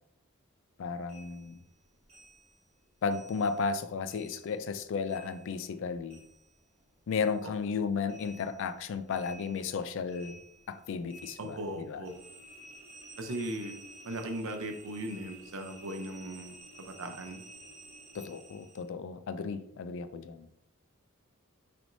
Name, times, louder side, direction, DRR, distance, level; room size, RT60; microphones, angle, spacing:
voice 1, 0.8-1.6 3.0-6.2 7.1-10.4 10.7-12.0 18.1-20.5, left 5 dB, 60° left, 11 dB, 0.3 m, -34 dB
sound 1, 1.1-3.8 4.1-6.8 7.1-18.9, right 1 dB, 30° right, 1.1 m, -53 dB
voice 2, 11.4-12.2 13.2-13.8 14.0-17.4, right 1 dB, 70° right, 5 dB, 0.7 m, -38 dB
5.9 x 3.4 x 2.6 m, 0.78 s
head